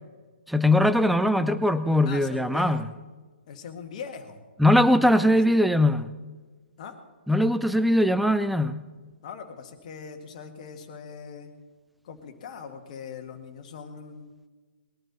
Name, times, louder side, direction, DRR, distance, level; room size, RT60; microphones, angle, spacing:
voice 1, 0.5-2.8 4.6-6.1 7.3-8.8, left 1 dB, ahead, 12 dB, 0.4 m, -21 dB
voice 2, 2.0-2.8 3.5-4.4 6.8-7.0 9.2-11.5 12.0-14.3, left 6 dB, 40° left, 6 dB, 1.9 m, -41 dB
21.0 x 12.0 x 4.1 m, 1.3 s
figure-of-eight pair, 125°, 6 cm